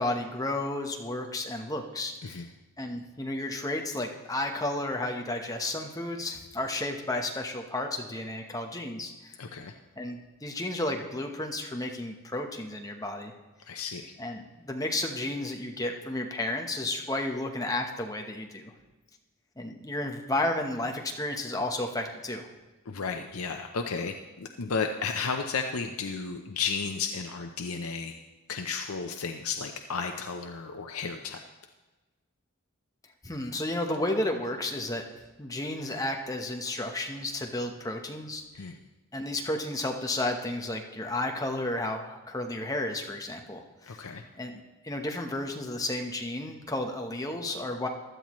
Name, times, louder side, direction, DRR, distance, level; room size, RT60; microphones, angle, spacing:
voice 1, 0.0-2.4 2.8-9.4 10.0-13.3 14.2-18.7 19.6-22.5 33.2-35.0 35.4-38.7 39.1-44.0 44.4-47.9, left 1 dB, 15° left, 3 dB, 1.0 m, -32 dB
voice 2, 9.4-9.7 13.7-14.1 22.9-28.2 28.5-31.4 38.6-38.7 43.9-44.2, left 5 dB, 80° left, 5 dB, 0.7 m, -33 dB
16.0 x 12.0 x 3.1 m, 1.2 s
head